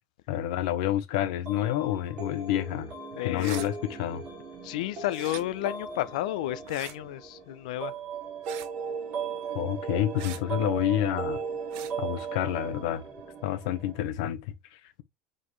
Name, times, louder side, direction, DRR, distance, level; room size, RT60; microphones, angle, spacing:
voice 1, 0.3-2.9 3.2-4.2 9.5-11.4 12.0-13.0 13.4-15.0, left 12 dB, 65° left, 1.1 m, -29 dB
sound 1, 1.5-14.0, right 6 dB, 35° right, 3.9 m, -37 dB
voice 2, 3.1-3.6 4.6-7.9, left 15 dB, 90° left, 0.7 m, -31 dB
sound 2, 3.3-3.7 5.1-5.4 6.7-7.0 8.4-8.7 10.2-10.4 11.7-11.9, right 13 dB, 65° right, 0.9 m, -41 dB
7.4 x 4.1 x 3.2 m
cardioid pair, 165°, 4 cm